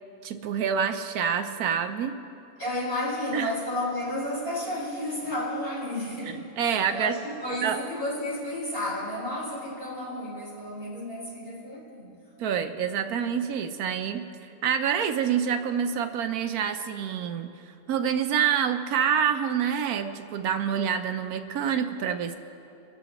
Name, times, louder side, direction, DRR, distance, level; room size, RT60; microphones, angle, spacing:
voice 1, 0.2-2.2 3.3-3.5 6.6-7.2 7.6-7.8 12.4-14.3 14.6-22.4, right 8 dB, 80° right, 8 dB, 1.1 m, -27 dB
voice 2, 2.6-12.1, left 1 dB, 40° left, -7 dB, 4.6 m, -32 dB
24.5 x 14.0 x 3.0 m, 2.8 s
omnidirectional pair, 1.6 m